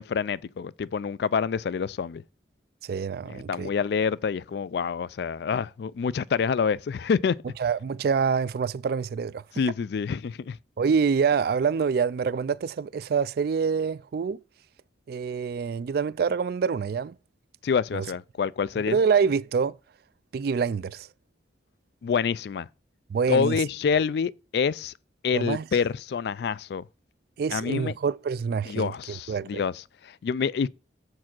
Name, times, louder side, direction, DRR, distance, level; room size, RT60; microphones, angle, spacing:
voice 1, 0.0-2.2 3.3-7.4 9.5-10.6 17.6-19.0 22.0-22.7 23.3-24.9 25.2-26.8 27.5-27.9 28.7-30.7, left 6 dB, 60° left, 0.3 m, -27 dB
voice 2, 2.8-3.7 7.6-9.4 10.8-14.4 15.1-17.1 17.9-18.1 18.9-19.7 20.3-21.1 23.1-23.6 25.3-25.6 27.4-29.6, right 6 dB, 55° right, 0.3 m, -26 dB
7.4 x 4.7 x 6.0 m
head